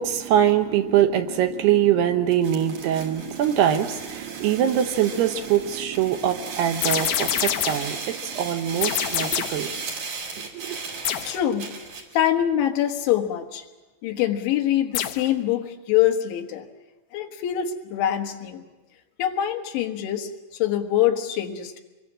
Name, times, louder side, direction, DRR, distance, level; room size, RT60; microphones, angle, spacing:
voice 1, 0.0-9.9 10.4-10.8, right 10 dB, 70° right, 8 dB, 2.8 m, -23 dB
sound 1, 2.3-12.2, right 4 dB, 50° right, 4.3 m, -36 dB
sound 2, 6.8-8.0 8.8-9.7 11.1-11.4 15.0-15.3, left 11 dB, 70° left, 2.5 m, -26 dB
voice 2, 11.2-11.7 12.1-13.7 14.0-16.7 17.1-18.7 19.2-21.8, left 11 dB, 85° left, 5 dB, 3.9 m, -24 dB
26.0 x 22.0 x 7.5 m, 1.1 s
omnidirectional pair, 5.2 m